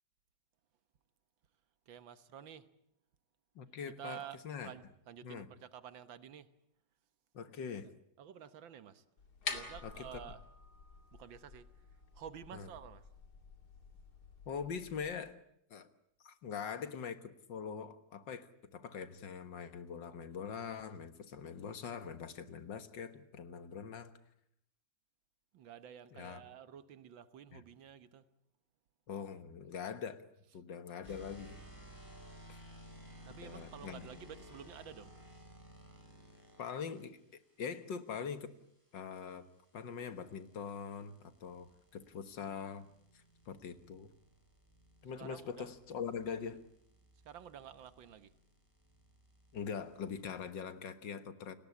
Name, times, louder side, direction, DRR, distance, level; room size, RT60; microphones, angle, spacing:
voice 1, 1.9-2.7 3.9-6.5 8.2-9.0 9.5-10.4 11.1-11.7 12.1-13.1 25.5-28.3 31.1-31.2 33.2-35.1 45.1-45.7 47.3-48.3, right 9 dB, 85° right, 13 dB, 1.9 m, -51 dB
voice 2, 3.6-4.7 5.2-5.5 7.3-7.9 9.8-10.2 12.5-12.7 14.5-15.4 15.7-15.9 16.2-17.2 17.5-24.1 26.1-26.4 27.5-27.6 29.1-30.2 30.5-31.6 32.5-32.6 33.4-34.1 36.6-37.2 37.6-38.5 38.9-39.5 39.7-42.9 43.5-44.1 45.0-46.6 49.5-51.5, left 6 dB, 75° left, 11 dB, 2.1 m, -43 dB
sound 1, 9.2-15.1, left 4 dB, 55° left, 2.9 m, -48 dB
sound 2, 31.0-37.0 39.5-50.5, equal, 10° left, 7.5 m, -57 dB
30.0 x 18.5 x 8.5 m, 0.75 s
omnidirectional pair, 2.0 m